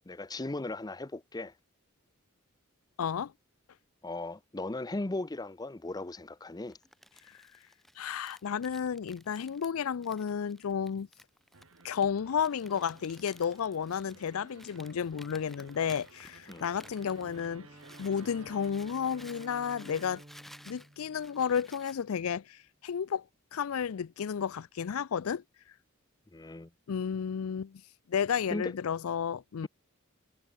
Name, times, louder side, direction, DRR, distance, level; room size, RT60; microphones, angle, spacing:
voice 1, 0.1-1.5 4.0-6.8 16.5-16.7 26.3-26.7 28.5-28.7, left 2 dB, 20° left, 0.6 m, -37 dB
voice 2, 3.0-3.3 8.0-11.1 11.8-17.7 18.0-20.2 20.7-23.2 23.5-25.4 26.9-27.8 28.1-29.7, left 7 dB, 80° left, 0.4 m, -32 dB
Crumpling crinkling, 6.7-18.3 18.6-22.0, equal, ahead, 5.8 m, -56 dB
sound 1, 11.5-18.7, right 3 dB, 70° right, 4.3 m, -56 dB
Bowed string instrument, 16.7-22.1, right 1 dB, 25° right, 2.3 m, -54 dB
head